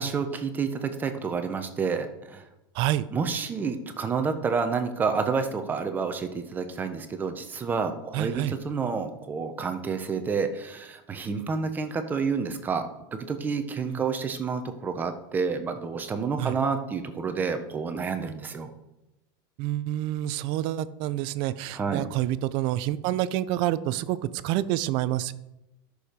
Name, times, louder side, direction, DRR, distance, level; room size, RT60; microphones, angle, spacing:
voice 1, 0.0-2.4 3.1-18.7 21.7-22.1, right 5 dB, 15° right, 7 dB, 0.8 m, -29 dB
voice 2, 2.7-3.1 8.1-8.5 13.9-14.0 16.4-16.5 19.6-25.3, right 14 dB, 40° right, 16 dB, 0.5 m, -28 dB
13.0 x 6.4 x 5.1 m, 0.93 s
supercardioid pair, 165°, 12 cm